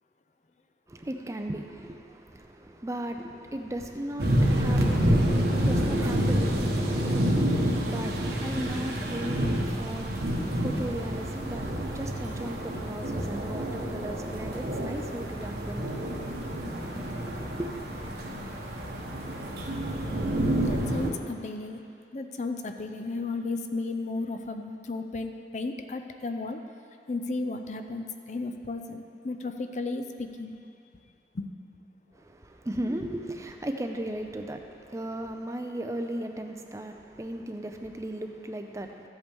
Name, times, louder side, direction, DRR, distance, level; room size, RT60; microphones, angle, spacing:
voice 1, 0.9-15.9 17.3-17.7 32.1-39.1, right 1 dB, 15° right, 5 dB, 0.4 m, -37 dB
sound 1, 4.2-21.1, equal, 65° right, 1.1 m, -28 dB
voice 2, 20.6-21.8 22.1-26.6 27.1-30.5 31.3-31.5, left 3 dB, 40° left, 6 dB, 0.5 m, -34 dB
14.0 x 8.0 x 3.5 m, 2.5 s
head